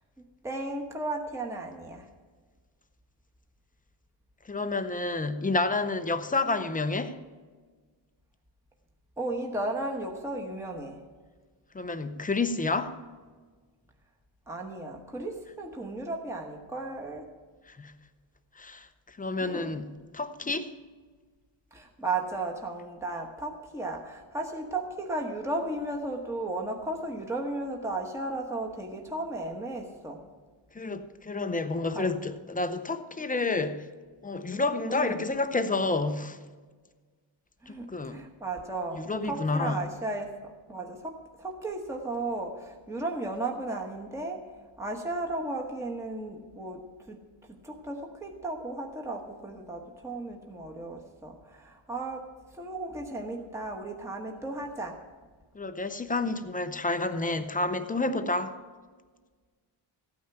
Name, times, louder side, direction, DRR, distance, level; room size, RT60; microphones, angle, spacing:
voice 1, 0.4-2.1 9.2-11.0 14.5-17.3 19.4-19.7 21.7-30.2 31.9-32.1 34.9-35.3 37.6-44.5 44.8-47.2 47.6-52.3 52.6-55.0, right 2 dB, 5° right, 2 dB, 1.1 m, -35 dB
voice 2, 4.4-7.2 11.7-13.0 17.7-17.9 18.6-19.9 20.1-20.7 30.7-33.9 34.2-36.4 37.7-38.2 38.9-39.8 55.5-58.5, left 3 dB, 15° left, 9 dB, 0.6 m, -29 dB
15.0 x 9.3 x 5.7 m, 1.5 s
cardioid pair, 130°, 48 cm